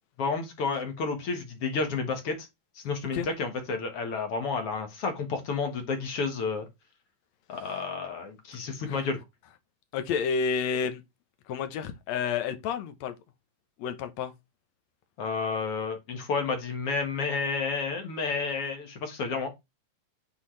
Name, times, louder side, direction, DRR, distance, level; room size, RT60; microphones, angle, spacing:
voice 1, 0.2-2.5 2.8-6.7 7.5-9.2 15.2-19.5, left 4 dB, 50° left, 2.0 m, -31 dB
voice 2, 9.9-11.0 11.5-13.1 13.8-14.3, left 6 dB, 65° left, 1.8 m, -30 dB
8.6 x 5.4 x 3.2 m
omnidirectional pair, 4.1 m